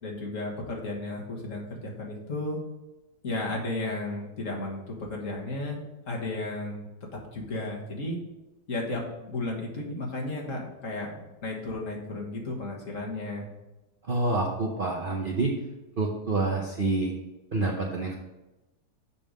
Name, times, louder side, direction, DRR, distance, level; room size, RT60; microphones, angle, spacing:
voice 1, 0.0-2.6 3.2-5.8 6.0-8.2 8.7-13.5, left 2 dB, 50° left, -1 dB, 1.7 m, -34 dB
voice 2, 14.1-15.5 16.0-17.1 17.5-18.1, right 2 dB, 45° right, -1 dB, 0.7 m, -27 dB
7.2 x 5.5 x 5.2 m, 1.0 s
omnidirectional pair, 1.9 m